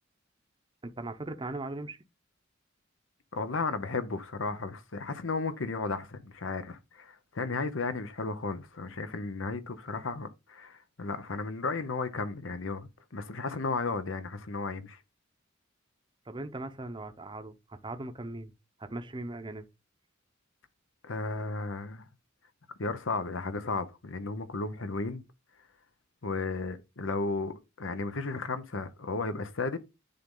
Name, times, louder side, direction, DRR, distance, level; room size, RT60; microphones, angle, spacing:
voice 1, 0.8-2.0 16.3-18.5 18.8-19.7, right 2 dB, 25° right, 0.7 m, -39 dB
voice 2, 3.3-15.0 21.0-22.1 22.8-25.2 26.2-29.8, left 3 dB, 80° left, 1.0 m, -34 dB
10.0 x 4.0 x 3.8 m
head